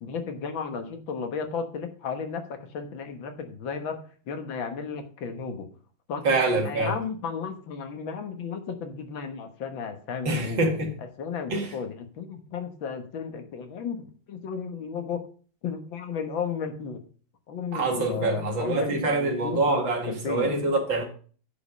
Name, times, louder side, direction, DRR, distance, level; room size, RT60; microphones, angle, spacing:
voice 1, 0.0-4.0 4.3-5.7 6.1-10.7 11.2-15.2 15.6-17.0 17.5-20.5, left 6 dB, 90° left, 2.1 m, -34 dB
voice 2, 6.2-7.0 10.3-10.9 11.5-11.7 17.7-21.0, right 2 dB, 80° right, 2.8 m, -25 dB
9.7 x 5.3 x 5.4 m
omnidirectional pair, 2.0 m